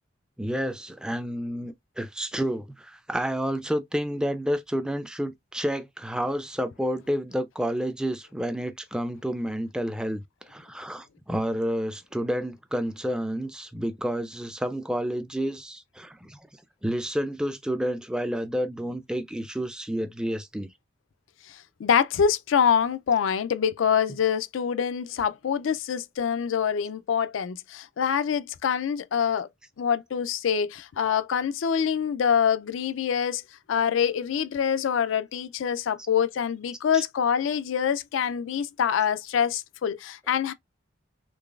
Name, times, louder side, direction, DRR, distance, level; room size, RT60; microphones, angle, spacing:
voice 1, 0.4-16.4 16.8-20.7 36.9-37.0, equal, 5° right, 0.3 m, -30 dB
voice 2, 21.5-29.5 29.8-33.4 33.7-40.5, left 7 dB, 90° left, 0.4 m, -25 dB
3.9 x 3.2 x 2.3 m
head